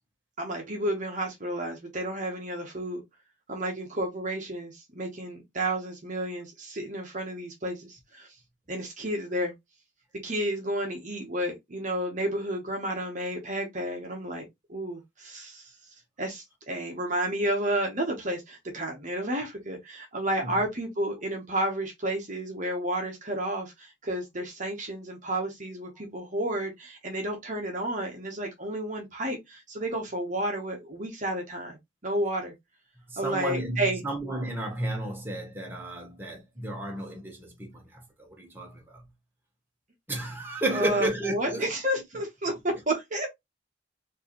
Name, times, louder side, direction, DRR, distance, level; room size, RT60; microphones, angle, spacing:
voice 1, 0.4-3.0 3.5-8.3 8.7-9.5 10.2-15.7 16.2-31.8 32.0-32.5 33.2-34.0 40.7-43.3, right 1 dB, 40° right, 1.0 m, -31 dB
voice 2, 33.1-39.1 40.1-41.7, right 1 dB, 10° right, 1.2 m, -33 dB
4.5 x 2.8 x 3.0 m
head